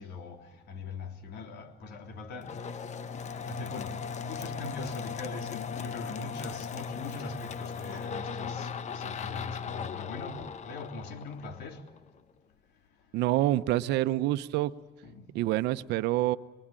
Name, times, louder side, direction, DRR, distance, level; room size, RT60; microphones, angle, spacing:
voice 1, 0.0-2.5 3.3-11.8 15.0-15.3, left 3 dB, 75° left, 3.4 m, -42 dB
sound 1, 2.4-12.0, left 6 dB, 45° left, 1.0 m, -38 dB
voice 2, 13.1-14.7 15.3-16.4, right 15 dB, 85° right, 0.9 m, -27 dB
24.5 x 23.5 x 9.0 m
cardioid pair, 110°, 17 cm